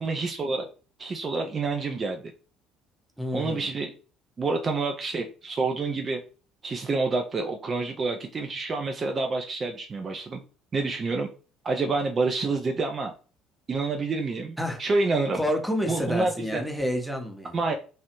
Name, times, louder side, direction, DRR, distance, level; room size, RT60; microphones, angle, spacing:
voice 1, 0.0-0.7 1.0-2.3 3.3-3.9 4.4-6.2 6.6-10.4 10.7-11.3 11.6-13.1 13.7-15.4 15.9-16.6 17.5-17.8, right 3 dB, 35° right, 0.3 m, -28 dB
voice 2, 3.2-3.7 14.6-14.8 15.3-17.6, left 1 dB, 5° right, 0.7 m, -29 dB
2.5 x 2.0 x 2.8 m
figure-of-eight pair, 55°, 0 cm